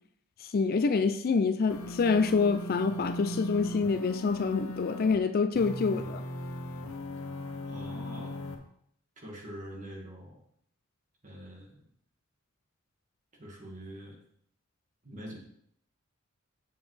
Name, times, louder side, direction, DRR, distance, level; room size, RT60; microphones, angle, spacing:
voice 1, 0.4-6.2, left 4 dB, 45° left, 10 dB, 0.4 m, -27 dB
sound 1, 1.7-5.2 5.5-8.6, left 1 dB, 85° left, 1.0 m, -38 dB
voice 2, 7.7-8.5 9.2-10.4 11.2-11.9 13.4-14.2 15.0-15.4, equal, 35° right, -1 dB, 1.9 m, -44 dB
7.1 x 7.1 x 3.3 m, 0.69 s
head